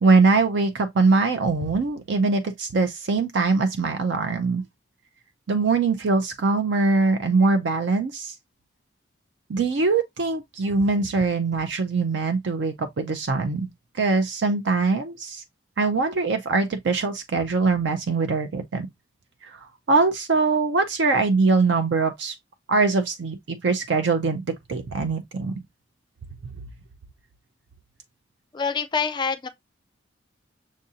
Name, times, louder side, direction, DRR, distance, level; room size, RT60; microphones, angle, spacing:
voice 1, 0.0-4.6 5.5-8.3 9.5-13.7 14.0-15.4 15.8-18.9 19.4-22.4 22.7-25.5, right 3 dB, 60° right, 0.4 m, -22 dB
voice 2, 28.5-29.5, left 5 dB, 20° left, 0.3 m, -26 dB
6.3 x 2.5 x 2.7 m
head